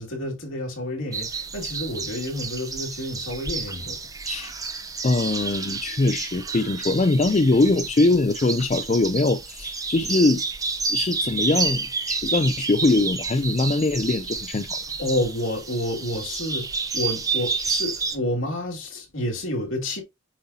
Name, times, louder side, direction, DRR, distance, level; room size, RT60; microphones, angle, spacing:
voice 1, 0.0-4.0 15.0-20.0, left 1 dB, 70° left, 2.5 m, -29 dB
sound 1, 1.1-18.2, right 4 dB, 15° right, 0.8 m, -30 dB
voice 2, 5.0-10.4 10.9-14.8, left 2 dB, 35° left, 0.4 m, -22 dB
7.5 x 5.4 x 2.8 m
head